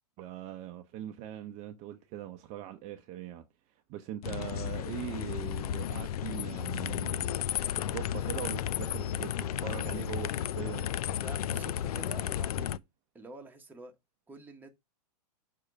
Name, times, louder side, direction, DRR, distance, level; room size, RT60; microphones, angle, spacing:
voice 1, 0.2-3.4 3.9-7.3 7.7-10.9, right 11 dB, 35° right, 0.8 m, -41 dB
sound 1, 4.2-12.8, left 10 dB, 65° left, 0.5 m, -33 dB
voice 2, 11.2-12.8 13.1-13.9 14.3-14.7, right 3 dB, 10° right, 1.3 m, -48 dB
6.5 x 3.7 x 5.2 m
hypercardioid pair, 125°, 21 cm